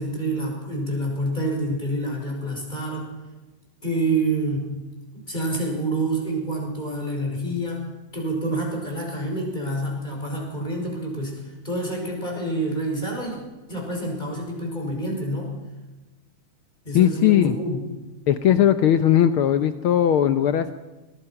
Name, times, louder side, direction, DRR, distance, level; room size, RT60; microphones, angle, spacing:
voice 1, 0.0-3.1 3.8-4.8 5.1-7.8 8.1-13.4 13.7-15.5 16.8-17.8, right 1 dB, 15° left, 0 dB, 5.8 m, -27 dB
voice 2, 16.9-17.6 18.3-20.7, left 10 dB, 85° left, 11 dB, 1.1 m, -18 dB
23.5 x 19.0 x 5.9 m, 1.1 s
omnidirectional pair, 3.4 m